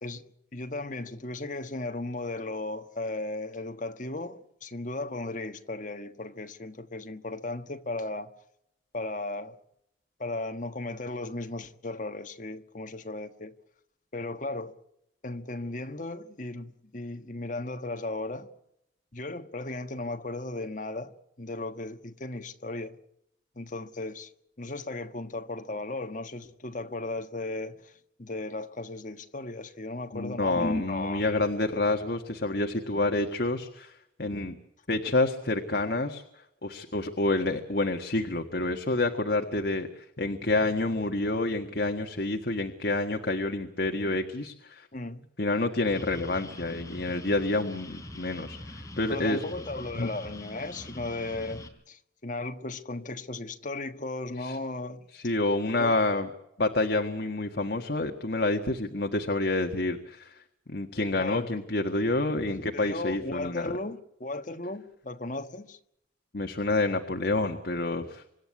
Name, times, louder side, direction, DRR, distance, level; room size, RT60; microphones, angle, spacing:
voice 1, 0.0-8.3 8.9-9.6 10.2-13.5 14.1-14.8 15.2-18.5 19.1-23.0 23.5-24.3 24.6-27.9 28.2-31.4 44.9-45.2 49.1-55.0 55.8-55.9 61.2-61.5 62.7-65.8, left 2 dB, 45° left, 1.5 m, -36 dB
voice 2, 30.1-34.6 34.9-36.2 36.6-44.9 45.4-49.4 49.9-50.1 54.4-54.6 55.1-56.3 56.6-60.4 60.7-63.7 66.3-68.2, left 2 dB, 65° left, 1.6 m, -28 dB
sound 1, 45.9-51.7, left 1 dB, 20° left, 3.7 m, -43 dB
26.0 x 12.0 x 9.7 m
head